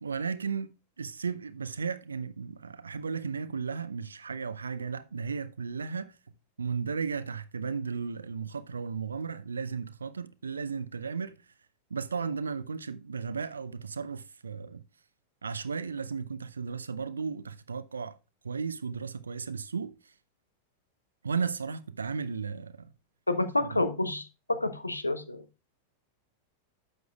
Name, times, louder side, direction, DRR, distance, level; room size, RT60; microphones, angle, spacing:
voice 1, 0.0-6.2 6.6-11.4 11.9-14.8 15.4-18.2 18.4-20.1 21.2-22.9 23.7-23.8, right 5 dB, 75° right, 0.6 m, -35 dB
voice 2, 23.3-25.4, left 2 dB, 80° left, 0.9 m, -29 dB
12.0 x 7.9 x 2.3 m
figure-of-eight pair, 90°, 0 cm